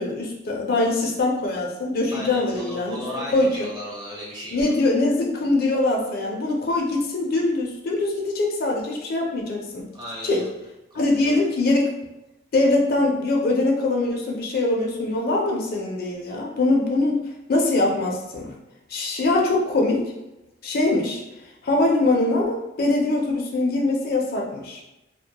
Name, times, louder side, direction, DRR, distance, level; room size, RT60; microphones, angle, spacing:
voice 1, 0.0-3.6 4.5-9.9 10.2-10.4 10.9-11.9 12.5-17.2 17.5-18.5 18.9-20.1 20.6-21.2 21.6-24.8, left 2 dB, 55° left, -1 dB, 0.4 m, -23 dB
voice 2, 2.1-4.8 9.9-10.5 10.9-11.3, equal, 25° right, -5 dB, 0.6 m, -36 dB
2.1 x 2.1 x 2.8 m, 0.95 s
head